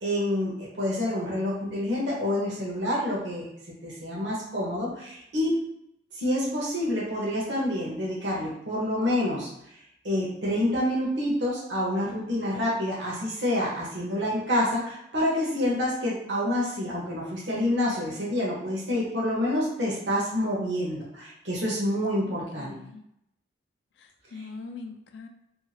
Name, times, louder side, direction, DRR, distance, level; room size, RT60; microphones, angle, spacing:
voice 1, 0.0-3.4 3.8-5.5 6.1-9.5 10.0-22.7 24.3-24.4, left 1 dB, 80° right, -5 dB, 0.9 m, -28 dB
voice 2, 22.3-23.0 24.0-25.3, left 4 dB, 75° left, 5 dB, 0.3 m, -42 dB
2.7 x 2.3 x 2.8 m, 0.78 s
head